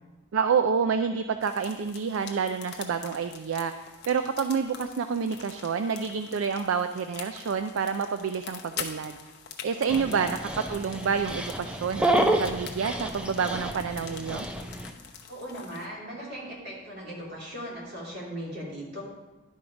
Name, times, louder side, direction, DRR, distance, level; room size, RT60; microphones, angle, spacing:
voice 1, 0.3-9.2 9.6-14.5, right 6 dB, 75° right, 9 dB, 0.4 m, -28 dB
sound 1, 1.4-15.9, left 7 dB, 55° left, 0.8 m, -45 dB
Dog, 9.9-14.9, right 1 dB, 5° right, 0.5 m, -29 dB
voice 2, 9.9-10.3 15.3-19.0, equal, 55° right, -5 dB, 3.0 m, -38 dB
11.0 x 5.2 x 4.7 m, 1.2 s
head